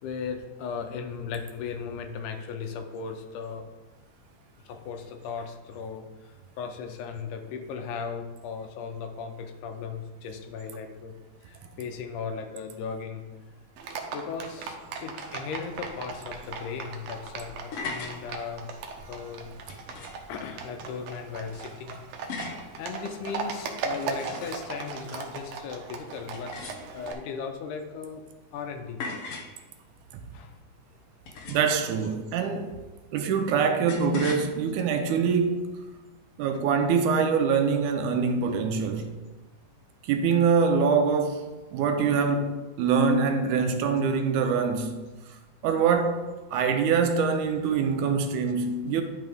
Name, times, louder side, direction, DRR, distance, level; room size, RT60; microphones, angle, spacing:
voice 1, 0.0-3.7 4.7-11.1 11.4-13.2 14.1-18.7 19.1-19.5 20.0-22.0 22.5-26.5 26.9-28.2 28.5-29.0 30.3-30.6, left 6 dB, 90° left, 2.3 m, -37 dB
Livestock farm animals working animals, 13.8-27.1, right 5 dB, 70° right, 1.7 m, -38 dB
sound 1, 17.7-18.2 19.7-20.3 22.3-22.7 23.7-24.7 26.3-27.2 29.0-29.6 31.3-31.8 33.9-34.4, left 4 dB, 65° left, 1.5 m, -38 dB
voice 2, 31.5-32.7 33.1-35.7 36.4-39.1 40.0-45.0 45.6-49.0, right 5 dB, 90° right, 2.2 m, -24 dB
10.5 x 5.6 x 3.5 m
omnidirectional pair, 3.5 m